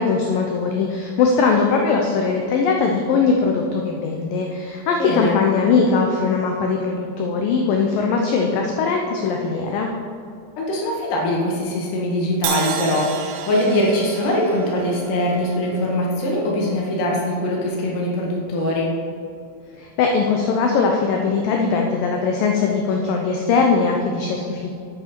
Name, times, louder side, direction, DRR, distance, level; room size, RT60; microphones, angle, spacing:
voice 1, 0.0-9.9 19.8-24.7, left 4 dB, 85° left, 1 dB, 2.0 m, -20 dB
voice 2, 5.0-5.4 10.6-18.9, left 1 dB, 60° left, -3 dB, 2.9 m, -22 dB
Crash cymbal, 12.4-16.5, right 9 dB, 90° right, 2.8 m, -32 dB
8.2 x 8.1 x 4.4 m, 2.3 s
omnidirectional pair, 4.8 m